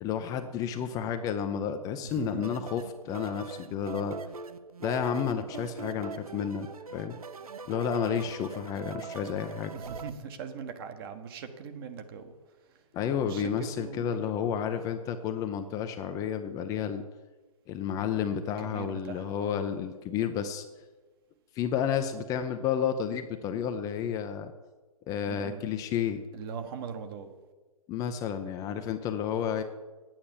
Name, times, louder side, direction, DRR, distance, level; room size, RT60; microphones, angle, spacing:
voice 1, 0.0-4.3 4.8-6.7 6.9-7.2 7.7-9.7 12.9-17.0 17.7-20.6 21.6-24.5 25.1-26.2 27.9-29.6, left 8 dB, 20° left, 7 dB, 0.6 m, -31 dB
voice 2, 2.0-2.6 8.1-8.4 9.7-12.3 13.2-14.2 18.7-19.6 25.3-25.6 26.3-27.3, right 6 dB, 40° right, 7 dB, 1.3 m, -40 dB
sound 1, 2.4-10.1, right 5 dB, 80° right, 0.7 m, -41 dB
9.7 x 8.9 x 7.2 m, 1.3 s
figure-of-eight pair, 125°, 19 cm